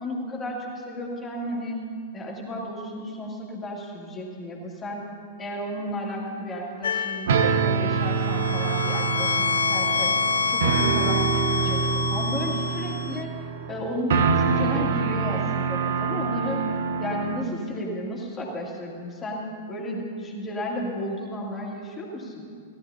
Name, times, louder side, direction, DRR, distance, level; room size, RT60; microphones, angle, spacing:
voice 1, 0.0-1.8 2.1-5.1 5.4-10.1 10.5-16.6 17.0-22.5, equal, 15° left, -2 dB, 2.4 m, -33 dB
sound 1, 6.8-7.4 8.1-13.2, left 5 dB, 65° left, 0.6 m, -27 dB
sound 2, 7.3-17.4, right 5 dB, 55° right, 0.8 m, -25 dB
17.5 x 12.5 x 2.8 m, 2.2 s
figure-of-eight pair, 100°, 0 cm